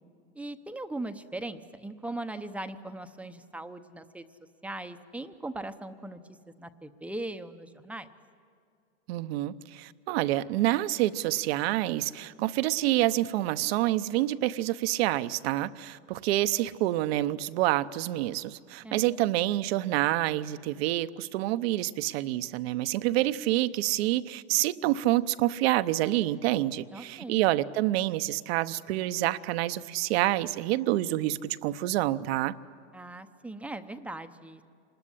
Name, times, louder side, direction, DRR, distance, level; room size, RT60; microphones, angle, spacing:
voice 1, 0.3-4.2 4.6-6.2 6.6-8.1 18.8-19.1 26.9-27.4 32.9-34.6, right 2 dB, 5° right, 8 dB, 0.8 m, -39 dB
voice 2, 9.1-32.6, right 15 dB, 60° right, 14 dB, 0.9 m, -27 dB
26.5 x 20.5 x 9.9 m, 2.3 s
supercardioid pair, 140°, 34 cm